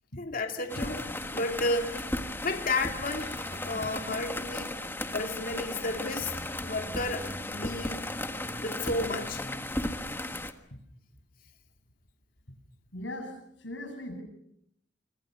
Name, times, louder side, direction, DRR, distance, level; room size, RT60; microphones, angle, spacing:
voice 1, 0.2-2.1 2.4-4.7 5.1-6.3 6.6-8.1 8.6-9.4, left 2 dB, 50° left, 2.5 m, -32 dB
sound 1, 0.7-10.5, left 1 dB, 10° left, 1.5 m, -35 dB
voice 2, 12.9-13.3 13.6-14.2, left 1 dB, 80° left, 7.9 m, -39 dB
28.5 x 25.0 x 6.5 m
head